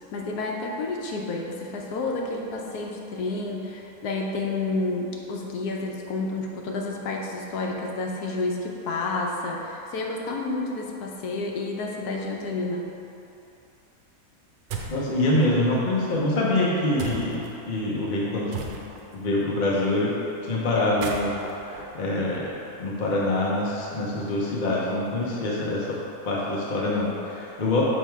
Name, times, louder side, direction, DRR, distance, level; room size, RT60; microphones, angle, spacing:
voice 1, 0.1-12.8, left 3 dB, 80° left, 0 dB, 1.2 m, -30 dB
sound 1, 14.7-15.1 17.0-17.5 18.5-19.1 20.8-22.8, right 5 dB, 75° right, 1.1 m, -36 dB
voice 2, 14.9-17.4 17.7-18.8 19.1-20.1 20.4-21.3 21.6-22.5 22.8-26.0 26.2-27.8, left 1 dB, 45° left, -5 dB, 0.7 m, -25 dB
6.5 x 3.5 x 4.5 m, 2.9 s
omnidirectional pair, 1.7 m